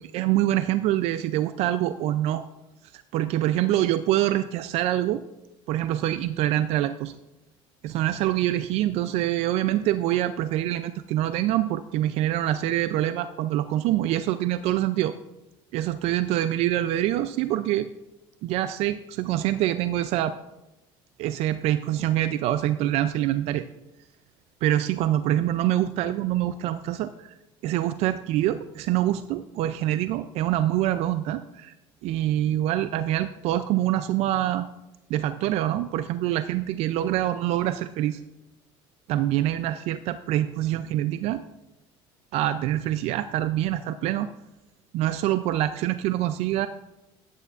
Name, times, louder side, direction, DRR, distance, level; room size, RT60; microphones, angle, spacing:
voice 1, 0.0-2.4 2.9-5.2 5.7-7.2 7.8-15.1 15.7-17.9 18.4-20.3 21.2-23.7 24.6-27.3 27.6-31.7 32.0-34.7 35.1-38.2 39.1-41.4 42.3-44.3 44.9-46.7, right 13 dB, 65° right, 12 dB, 0.4 m, -25 dB
13.5 x 9.2 x 2.4 m, 0.95 s
cardioid pair, 120°, 11 cm